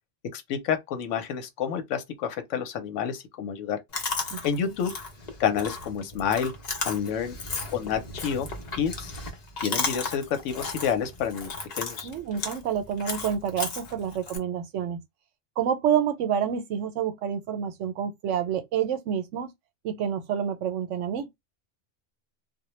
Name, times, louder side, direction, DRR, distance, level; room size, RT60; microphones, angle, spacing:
voice 1, 0.3-3.8 4.4-4.9 5.4-6.5 6.8-7.4 7.7-8.5 8.8-9.1 9.6-12.1, left 8 dB, 85° left, 1.0 m, -29 dB
Chewing mastication, 3.9-14.4, left 3 dB, 45° left, 0.6 m, -35 dB
voice 2, 4.3-4.7 12.0-15.0 15.6-19.5 19.8-21.3, right 8 dB, 80° right, 0.9 m, -28 dB
2.2 x 2.1 x 3.0 m
omnidirectional pair, 1.3 m